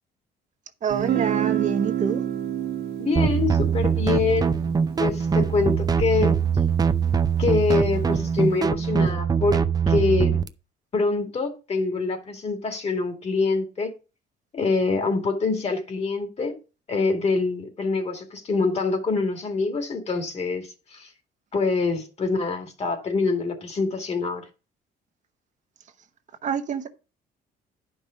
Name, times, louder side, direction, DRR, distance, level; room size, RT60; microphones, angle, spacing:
voice 1, 0.8-2.2 26.4-26.9, right 7 dB, 45° right, 1.0 m, -26 dB
Guitar, 0.9-6.7, right 10 dB, 70° right, 1.4 m, -30 dB
voice 2, 3.0-4.6 5.0-6.4 7.4-9.6 9.9-10.4 10.9-13.9 14.5-16.6 16.9-21.1 21.5-24.4, left 4 dB, 40° left, 2.3 m, -25 dB
sound 1, 3.2-10.5, right 6 dB, 25° right, 0.6 m, -22 dB
10.5 x 5.5 x 5.1 m
cardioid pair, 110°, 17 cm